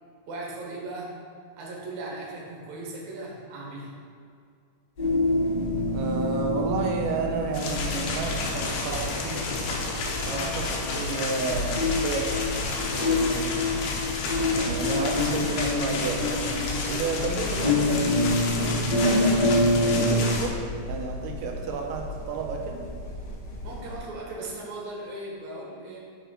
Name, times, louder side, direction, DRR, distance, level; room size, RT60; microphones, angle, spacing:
voice 1, 0.3-1.2 1.6-3.9 10.3-10.5 23.6-26.0, right 2 dB, 65° right, -3 dB, 2.6 m, -37 dB
sound 1, 5.0-24.0, left 2 dB, 60° left, 2.2 m, -37 dB
sound 2, 5.0-20.2, left 2 dB, 25° left, 0.8 m, -27 dB
voice 2, 5.9-9.5 10.2-12.3 12.7-13.9 14.5-18.1 18.5-20.6 20.9-22.8, right 4 dB, 80° right, 2 dB, 2.5 m, -32 dB
sound 3, 7.5-20.5, left 3 dB, 85° left, 2.6 m, -31 dB
7.0 x 5.8 x 4.5 m, 2.2 s
omnidirectional pair, 3.8 m